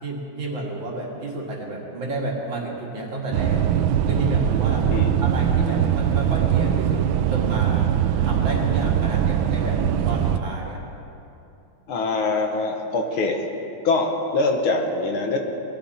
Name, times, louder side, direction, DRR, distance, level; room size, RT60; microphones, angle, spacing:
voice 1, 0.0-3.6 4.0-4.9 5.2-7.9 8.2-10.8, right 2 dB, 60° right, -2 dB, 2.8 m, -30 dB
sound 1, 3.3-10.4, right 9 dB, 75° right, 1.3 m, -21 dB
voice 2, 11.9-13.4 13.8-15.4, left 3 dB, 70° left, 3 dB, 2.0 m, -23 dB
20.5 x 13.5 x 4.2 m, 2.8 s
omnidirectional pair, 2.4 m